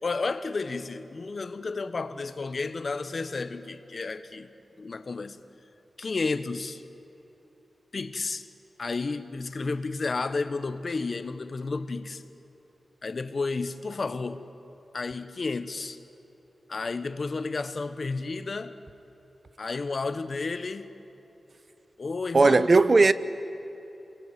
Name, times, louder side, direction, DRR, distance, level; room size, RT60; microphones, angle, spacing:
voice 1, 0.0-4.5 4.8-5.4 6.0-6.8 7.9-8.5 8.8-12.2 13.0-14.4 14.9-16.0 16.7-18.7 19.6-20.9 22.0-22.8, left 3 dB, 50° left, 1.2 m, -32 dB
voice 2, 22.3-23.1, right 3 dB, 45° right, 0.8 m, -17 dB
28.5 x 22.5 x 9.3 m
wide cardioid pair, 90°, 0 cm